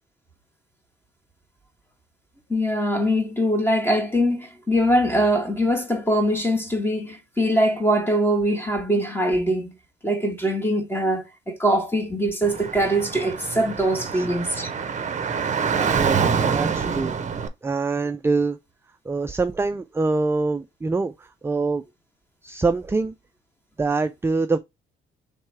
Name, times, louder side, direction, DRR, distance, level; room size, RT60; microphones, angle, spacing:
voice 1, 2.5-9.7 10.0-14.7 16.8-16.9, equal, 10° left, 1.4 m, -22 dB
Car / Traffic noise roadway noise, 12.4-17.5, right 6 dB, 40° right, 0.7 m, -26 dB
voice 2, 16.0-17.2 17.6-18.6 19.1-21.8 22.4-23.1 23.8-24.6, right 3 dB, 10° right, 0.3 m, -24 dB
3.3 x 3.0 x 4.5 m
cardioid pair, 90°, 20 cm